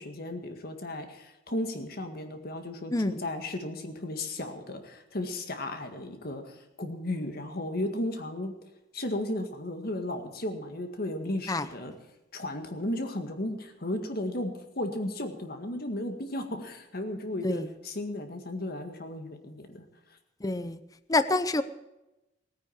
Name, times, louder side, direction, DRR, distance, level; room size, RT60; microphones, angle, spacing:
voice 1, 0.0-8.5 8.9-11.9 12.3-19.8, left 1 dB, 55° left, 6 dB, 1.9 m, -35 dB
voice 2, 20.4-20.8 21.1-21.6, left 2 dB, 20° left, 12 dB, 0.6 m, -26 dB
17.5 x 9.6 x 7.2 m, 0.95 s
head